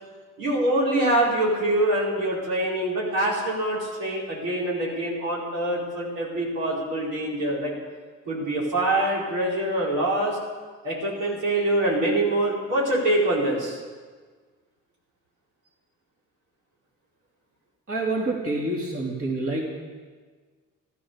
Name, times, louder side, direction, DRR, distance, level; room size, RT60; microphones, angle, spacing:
voice 1, 0.4-7.7 8.2-10.4 10.8-13.8, right 1 dB, 90° right, -4 dB, 4.9 m, -24 dB
voice 2, 17.9-19.6, right 2 dB, 45° right, -3 dB, 3.5 m, -27 dB
14.0 x 13.0 x 6.9 m, 1.5 s
cardioid pair, 90°, 30 cm